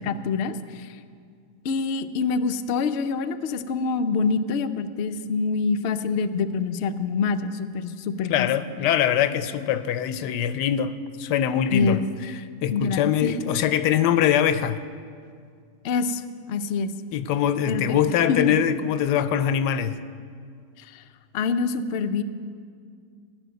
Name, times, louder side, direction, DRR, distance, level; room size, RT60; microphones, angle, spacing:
voice 1, 0.1-1.0 1.6-8.5 11.7-12.1 12.7-13.5 15.8-16.9 17.7-18.0 18.3-18.6 20.8-21.0 21.3-22.2, left 4 dB, 70° left, 0.6 m, -26 dB
voice 2, 8.3-12.0 12.6-14.8 17.1-20.0, left 9 dB, 90° left, 1.2 m, -23 dB
15.0 x 6.3 x 9.3 m
omnidirectional pair, 1.8 m